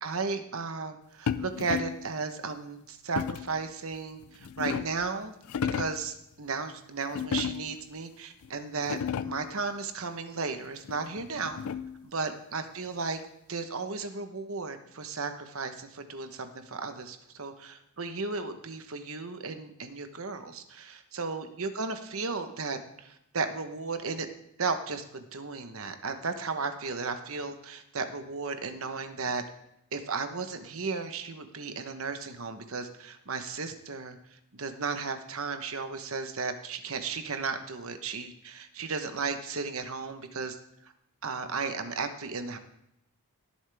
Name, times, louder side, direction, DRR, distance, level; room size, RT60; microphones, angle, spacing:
voice 1, 0.0-5.3 5.7-11.6 12.0-13.2 13.5-20.8 21.1-24.3 24.6-29.4 29.9-40.6 40.8-40.9 41.2-42.6, right 4 dB, 65° right, 8 dB, 1.1 m, -35 dB
sound 1, 1.3-2.1 3.2-3.6 4.2-5.1 5.4-6.1 7.1-7.9 8.4-8.5 8.8-9.5 10.9-12.1, left 7 dB, 75° left, 0.4 m, -33 dB
19.0 x 7.3 x 3.5 m, 0.80 s
head